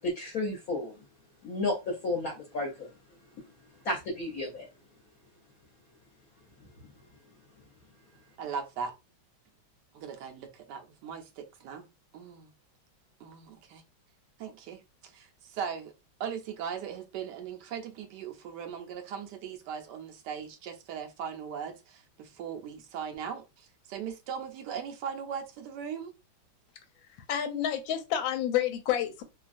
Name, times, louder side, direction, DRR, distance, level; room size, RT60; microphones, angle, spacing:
voice 1, 0.0-1.0 1.4-3.2 3.8-4.7 6.6-6.7, left 2 dB, 60° left, 1.1 m, -33 dB
voice 2, 8.4-8.9 9.9-11.9 12.1-12.5 13.2-13.8 14.4-15.9 16.2-26.1, right 7 dB, 70° right, 1.0 m, -39 dB
voice 3, 27.1-29.2, left 10 dB, 75° left, 1.3 m, -29 dB
3.1 x 2.3 x 2.5 m
omnidirectional pair, 2.2 m